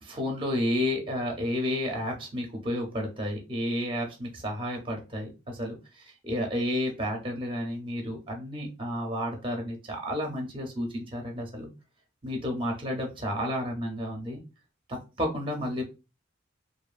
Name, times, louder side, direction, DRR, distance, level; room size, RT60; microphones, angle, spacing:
voice 1, 0.0-11.7 12.2-14.4 14.9-15.8, left 1 dB, 25° right, 1 dB, 0.5 m, -31 dB
2.6 x 2.3 x 2.3 m, 0.30 s
head